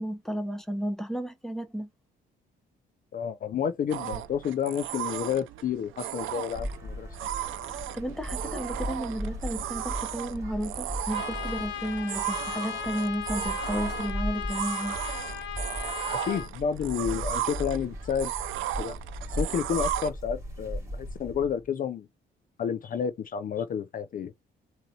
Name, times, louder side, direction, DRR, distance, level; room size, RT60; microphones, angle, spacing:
voice 1, 0.0-1.9 7.7-15.0, equal, ahead, 0.8 m, -33 dB
voice 2, 3.1-7.1 16.3-18.3 18.8-18.9 19.3-22.1 22.6-24.3, left 8 dB, 45° left, 0.4 m, -30 dB
sound 1, 3.9-20.1, right 13 dB, 80° right, 0.5 m, -35 dB
sound 2, 6.5-21.6, equal, 15° right, 2.5 m, -38 dB
Trumpet, 11.1-16.5, left 9 dB, 70° left, 0.8 m, -37 dB
3.9 x 2.7 x 2.7 m
cardioid pair, 90°, 20 cm